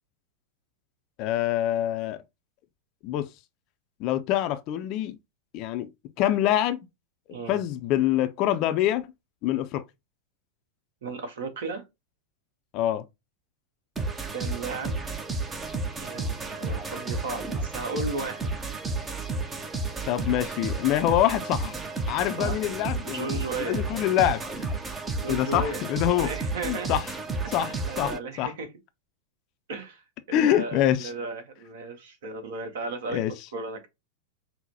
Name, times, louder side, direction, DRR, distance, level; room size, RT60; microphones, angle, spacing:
voice 1, 1.2-2.2 3.0-3.3 4.0-5.2 5.5-5.9 6.2-6.9 7.5-9.1 9.4-9.8 12.7-13.0 20.1-21.8 22.1-24.4 25.3-26.3 26.6-27.0 27.5-28.5 30.3-31.1 33.1-33.3, left 12 dB, 40° left, 0.4 m, -25 dB
voice 2, 7.3-7.6 11.0-11.8 14.3-15.0 16.0-18.5 22.4-22.6 23.0-23.8 25.2-25.8 26.2-27.0 27.4-28.7 29.7-33.2 33.5-33.9, right 3 dB, 55° right, 1.0 m, -35 dB
sound 1, 14.0-28.2, right 3 dB, 15° right, 0.6 m, -32 dB
5.5 x 2.1 x 2.7 m
figure-of-eight pair, 90°, 0 cm